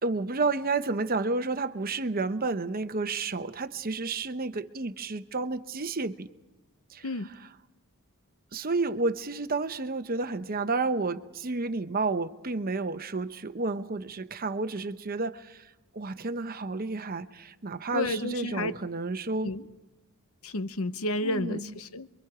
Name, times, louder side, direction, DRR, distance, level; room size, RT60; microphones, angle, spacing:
voice 1, 0.0-6.3 6.9-7.5 8.5-19.5 21.2-21.8, right 3 dB, 40° right, 10 dB, 0.9 m, -31 dB
voice 2, 17.9-18.7 19.4-19.6 20.4-22.1, left 2 dB, 70° left, 12 dB, 0.9 m, -31 dB
27.0 x 23.5 x 4.9 m, 1.0 s
head